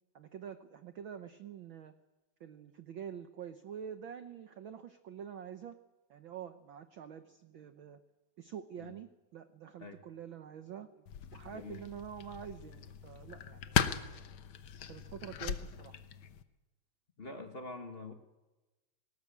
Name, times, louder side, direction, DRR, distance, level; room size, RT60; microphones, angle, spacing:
voice 1, 0.1-1.9 2.4-5.8 6.1-8.0 8.4-11.0 11.3-13.9 14.9-16.0, right 8 dB, 80° right, 10 dB, 1.1 m, -47 dB
sound 1, 11.1-16.4, left 8 dB, 65° left, 1.3 m, -38 dB
voice 2, 17.2-18.1, left 2 dB, 35° left, 5 dB, 1.0 m, -45 dB
19.0 x 18.5 x 8.5 m, 1.1 s
omnidirectional pair, 3.4 m